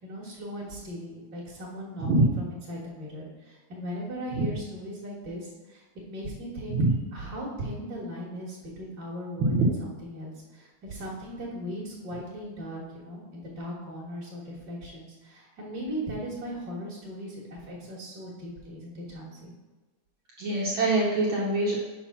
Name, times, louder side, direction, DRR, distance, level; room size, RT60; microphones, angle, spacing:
voice 1, 0.0-5.8 6.1-6.8 7.1-19.5, equal, 45° right, -5 dB, 1.5 m, -38 dB
voice 2, 20.4-21.9, right 2 dB, 65° right, -4 dB, 1.3 m, -24 dB
5.6 x 4.9 x 5.7 m, 1.2 s
omnidirectional pair, 3.4 m